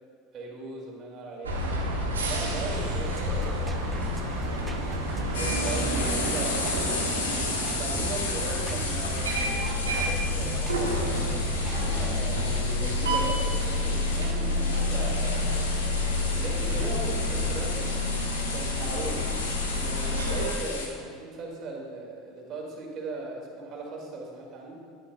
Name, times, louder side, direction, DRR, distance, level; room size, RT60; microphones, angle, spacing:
voice 1, 0.3-1.6 2.3-4.5 5.2-7.1 7.7-24.7, right 2 dB, 40° right, -2 dB, 2.0 m, -39 dB
sound 1, 1.4-20.5, left 1 dB, 80° right, 1.0 m, -29 dB
sound 2, 2.7-12.2, right 1 dB, 15° right, 0.7 m, -39 dB
sound 3, 5.3-20.9, left 4 dB, 75° left, 1.0 m, -34 dB
9.9 x 9.8 x 2.3 m, 2.1 s
figure-of-eight pair, 75°, 0 cm